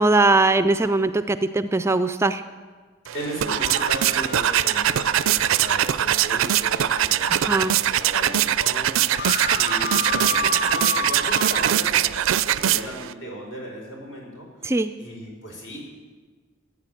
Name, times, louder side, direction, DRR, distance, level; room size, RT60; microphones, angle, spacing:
voice 1, 0.0-2.4 7.3-7.7 14.6-14.9, right 2 dB, 15° right, 11 dB, 0.3 m, -20 dB
voice 2, 3.1-7.6 7.9-14.5 15.0-15.9, equal, 65° left, -1 dB, 4.5 m, -36 dB
sound 1, 3.1-13.1, right 11 dB, 85° right, 0.4 m, -22 dB
sound 2, 3.4-7.9 8.4-8.5 8.6-11.7, left 4 dB, 50° left, 0.7 m, -32 dB
14.0 x 9.0 x 7.6 m, 1.4 s
head